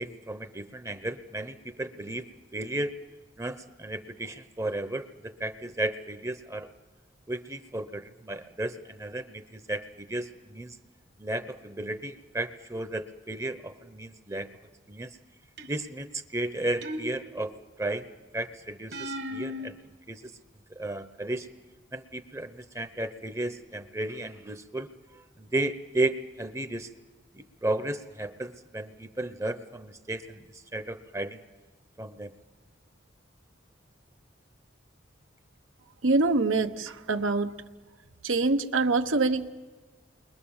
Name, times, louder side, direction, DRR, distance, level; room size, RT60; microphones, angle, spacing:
voice 1, 0.0-2.2 2.5-2.9 3.4-6.7 7.3-10.8 11.2-14.5 14.9-15.1 15.7-18.1 18.3-19.8 20.1-20.2 20.7-21.5 21.9-24.9 25.1-26.9 27.3-31.4 32.0-32.3, right 1 dB, 15° right, 10 dB, 0.8 m, -34 dB
sound 1, 15.6-16.1 16.8-17.7 18.9-19.7, left 1 dB, 55° right, 1.5 m, -37 dB
voice 2, 36.0-37.6 38.2-39.5, right 3 dB, 85° right, 7 dB, 1.0 m, -25 dB
29.0 x 22.0 x 7.2 m, 1.3 s
head